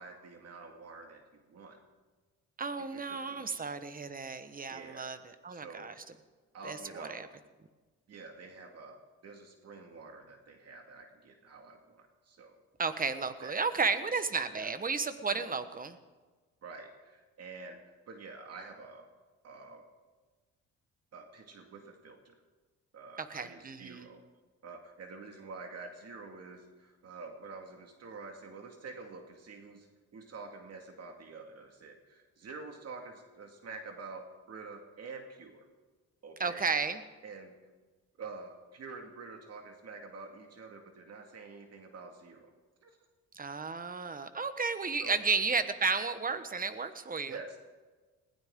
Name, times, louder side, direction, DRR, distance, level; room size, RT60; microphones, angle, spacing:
voice 1, 0.0-1.8 2.8-3.7 4.7-5.1 5.5-5.9 6.5-7.3 8.1-12.5 13.4-13.8 14.5-14.7 15.3-15.5 16.6-19.1 19.4-19.8 21.1-22.3 22.9-24.2 24.6-29.9 30.1-35.7 36.2-36.6 37.2-37.5 38.2-42.5 42.8-43.0 45.0-45.2 47.3-47.6, right 4 dB, 55° right, 3 dB, 2.1 m, -48 dB
voice 2, 2.6-5.9 6.6-7.3 12.8-16.0 23.2-24.1 36.4-37.0 43.4-47.3, right 4 dB, 30° right, 11 dB, 1.2 m, -33 dB
21.0 x 16.0 x 3.8 m, 1.3 s
cardioid pair, 90°, 30 cm